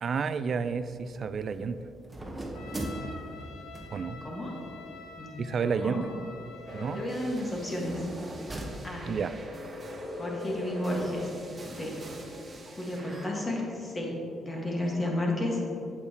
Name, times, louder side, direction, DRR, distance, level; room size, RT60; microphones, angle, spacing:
voice 1, 0.0-1.8 3.9-4.2 5.4-6.1 6.7-7.0 9.1-9.3, right 5 dB, 50° right, 12 dB, 0.3 m, -30 dB
sound 1, 0.6-9.5, right 1 dB, 20° right, 1.0 m, -42 dB
Trumpet, 2.5-7.3, left 4 dB, 85° left, 0.6 m, -47 dB
voice 2, 3.9-4.6 5.2-6.0 6.9-8.0 8.8-9.2 10.1-11.3 11.6-12.1 12.6-15.8, left 1 dB, 25° left, -1 dB, 1.7 m, -33 dB
sound 2, 6.7-13.3, left 2 dB, 35° right, 1.4 m, -42 dB
8.1 x 7.2 x 2.9 m, 2.6 s
cardioid pair, 90°, 0 cm